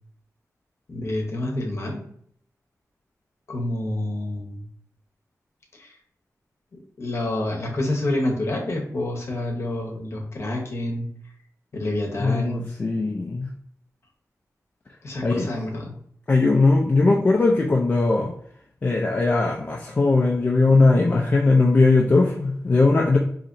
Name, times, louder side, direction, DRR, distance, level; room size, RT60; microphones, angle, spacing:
voice 1, 0.9-2.0 3.5-4.6 5.8-5.9 7.0-11.1 11.7-12.7 15.0-15.9, left 1 dB, 50° left, 0 dB, 0.8 m, -28 dB
voice 2, 12.2-13.5 15.2-15.5 16.3-18.3 18.8-23.2, left 3 dB, 30° left, -2 dB, 0.3 m, -19 dB
4.1 x 2.8 x 2.5 m, 0.64 s
wide cardioid pair, 180°, 6 cm